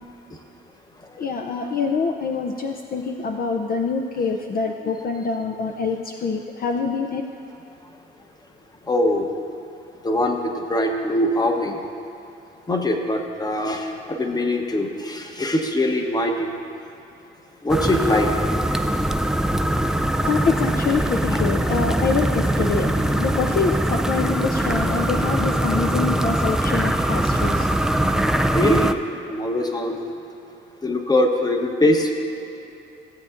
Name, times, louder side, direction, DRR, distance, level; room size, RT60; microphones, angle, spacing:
voice 1, 1.2-7.2 20.2-22.9 23.2-27.7, left 4 dB, 45° left, 2 dB, 0.5 m, -25 dB
voice 2, 8.9-9.3 10.0-11.8 12.7-13.9 14.2-16.5 17.6-18.3 21.3-21.4 28.5-28.9 29.3-30.1 30.8-32.1, left 1 dB, 20° left, 3 dB, 1.0 m, -22 dB
sound 1, 17.7-28.9, right 1 dB, 5° right, 0.3 m, -22 dB
15.5 x 7.7 x 2.5 m, 2.9 s
cardioid pair, 90°, 20 cm